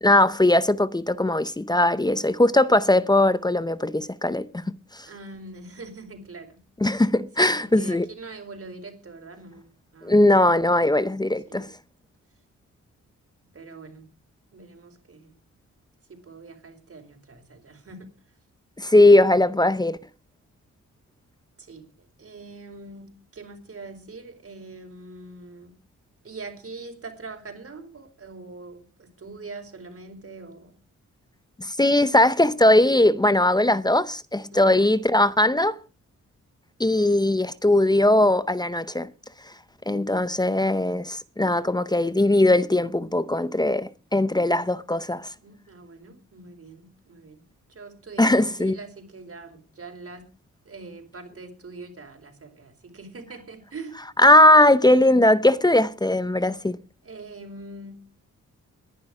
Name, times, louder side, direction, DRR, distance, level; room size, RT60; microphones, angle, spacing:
voice 1, 0.0-4.5 4.9-5.1 6.8-8.1 10.0-11.7 18.8-20.0 31.6-35.8 36.8-39.1 39.9-45.3 48.2-48.8 54.2-56.8, left 1 dB, 15° left, 0.6 m, -19 dB
voice 2, 5.0-6.6 7.4-9.7 9.9-10.2 11.4-11.7 13.5-14.0 14.5-15.3 16.1-18.1 21.6-25.7 26.2-30.7 34.5-34.8 45.4-47.4 47.7-50.2 50.6-54.0 57.0-58.0, right 3 dB, 50° right, 4.5 m, -42 dB
19.5 x 11.0 x 4.9 m
wide cardioid pair, 115°, 31 cm